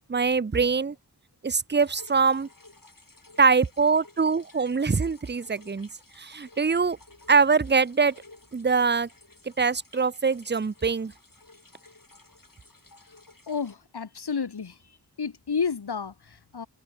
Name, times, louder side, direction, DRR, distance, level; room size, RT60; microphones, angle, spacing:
voice 1, 0.1-1.0 1.4-2.5 3.4-5.9 6.2-7.0 7.3-8.2 8.5-9.1 9.6-11.1, right 5 dB, 30° right, 0.6 m, -23 dB
sound 1, 1.8-13.7, left 2 dB, 60° left, 5.5 m, -54 dB
voice 2, 13.5-14.8 15.2-16.7, left 6 dB, 90° left, 1.1 m, -31 dB
wide cardioid pair, 45°, 38 cm